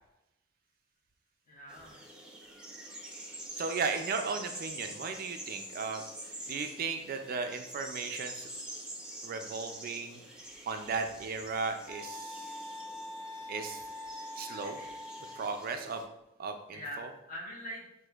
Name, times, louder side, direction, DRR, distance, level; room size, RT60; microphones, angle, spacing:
voice 1, 1.5-2.1 13.7-13.8 14.5-15.0 16.7-17.8, equal, 40° left, -4 dB, 1.3 m, -44 dB
sound 1, 1.7-16.0, right 1 dB, 5° right, 0.6 m, -46 dB
voice 2, 3.6-8.5 9.2-10.2 10.7-12.6 13.5-13.8 14.4-14.8 15.3-16.0 16.4-17.1, right 4 dB, 45° right, 6 dB, 0.3 m, -36 dB
sound 2, 11.9-15.5, left 2 dB, 10° left, 1.1 m, -43 dB
6.0 x 2.6 x 2.4 m, 0.90 s
head